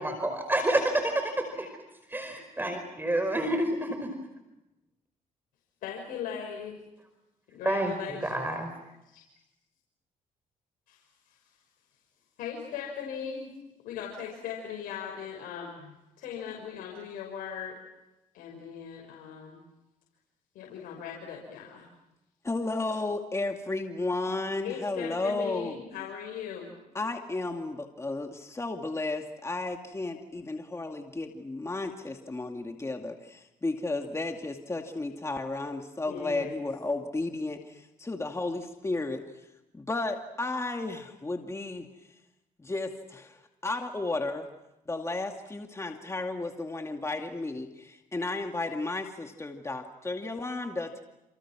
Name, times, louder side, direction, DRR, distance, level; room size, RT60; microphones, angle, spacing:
voice 1, 0.0-1.7 2.1-3.7 7.6-8.7, right 1 dB, 15° right, 6 dB, 5.1 m, -28 dB
voice 2, 5.8-6.8 7.5-8.5 9.0-9.2 10.9-11.4 12.4-13.5 13.8-17.8 18.3-19.6 20.5-21.9 24.6-26.7 36.1-36.5, left 8 dB, 85° left, -1 dB, 6.4 m, -39 dB
voice 3, 22.4-25.8 26.9-39.2 39.7-41.9 42.6-44.5 44.9-51.0, left 2 dB, 20° left, 4 dB, 2.4 m, -33 dB
29.5 x 29.5 x 6.3 m, 0.95 s
cardioid pair, 75°, 14 cm